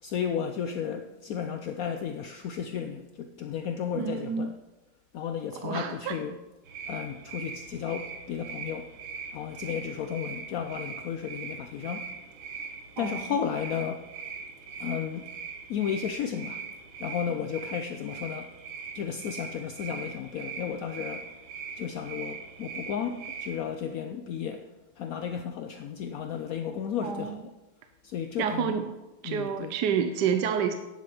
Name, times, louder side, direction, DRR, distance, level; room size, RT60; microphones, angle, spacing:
voice 1, 0.0-4.6 5.1-6.4 6.9-8.9 9.3-12.1 12.5-12.7 13.0-14.1 14.8-15.3 15.7-16.6 17.0-18.5 18.9-21.3 21.7-24.7 25.0-27.5 28.0-28.8 29.2-29.8, left 8 dB, 80° left, 7 dB, 0.8 m, -33 dB
voice 2, 3.9-4.5 5.6-6.2 13.0-13.2 27.0-27.4 28.4-28.9 29.2-30.7, right 7 dB, 70° right, 8 dB, 1.1 m, -28 dB
sound 1, 6.6-23.6, right 5 dB, 90° right, 2.0 m, -41 dB
10.5 x 7.8 x 5.4 m, 1.1 s
omnidirectional pair, 2.2 m